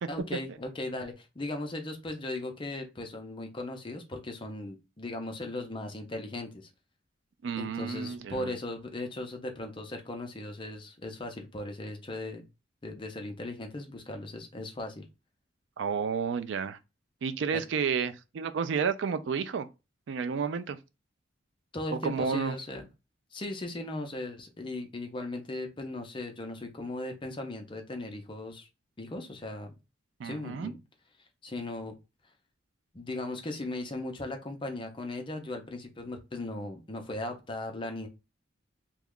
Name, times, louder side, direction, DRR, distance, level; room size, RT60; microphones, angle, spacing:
voice 1, 0.1-6.7 7.6-12.4 12.8-15.0 17.5-17.6 21.7-22.9 23.3-28.7 29.0-29.7 30.2-30.8 31.4-31.9 32.9-38.1, left 2 dB, 25° left, 0.5 m, -38 dB
voice 2, 7.4-8.5 15.8-16.8 17.2-19.7 20.1-20.8 21.9-22.6 30.2-30.7, right 6 dB, 70° right, 0.4 m, -31 dB
3.0 x 2.3 x 3.6 m
head